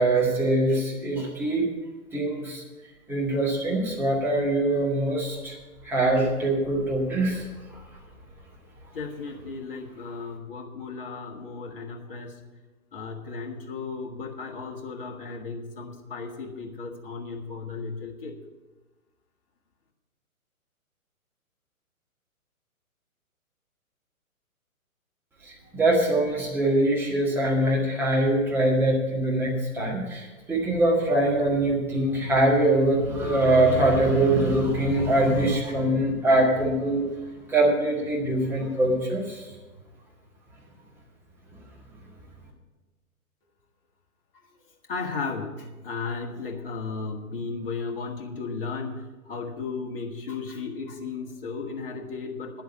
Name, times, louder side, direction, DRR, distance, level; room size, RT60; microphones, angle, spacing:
voice 1, 0.0-1.7 2.1-2.6 3.1-5.5 5.8-7.4 7.7-7.8 25.4-37.1 37.5-39.4, right 1 dB, 5° right, -4 dB, 1.8 m, -23 dB
voice 2, 8.9-12.4 12.9-18.3 44.9-52.6, left 4 dB, 40° left, 2 dB, 1.7 m, -35 dB
10.5 x 7.9 x 8.2 m, 1.2 s
figure-of-eight pair, 125°, 43 cm